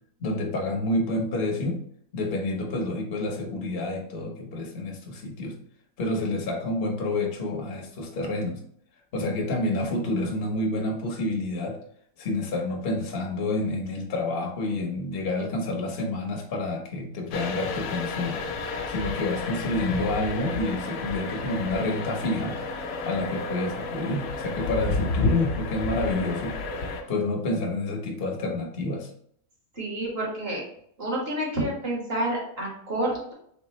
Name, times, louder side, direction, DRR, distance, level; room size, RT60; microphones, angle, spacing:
voice 1, 0.2-1.8 2.1-5.6 6.0-8.6 9.1-11.8 12.2-18.4 18.9-22.6 23.1-26.6 27.1-29.1, left 2 dB, 45° left, 1 dB, 1.0 m, -28 dB
sound 1, 17.3-27.0, left 3 dB, 80° left, 1.2 m, -31 dB
voice 2, 29.7-30.6 31.0-33.3, right 1 dB, 40° right, -3 dB, 1.8 m, -29 dB
4.5 x 3.5 x 3.1 m, 0.67 s
omnidirectional pair, 1.7 m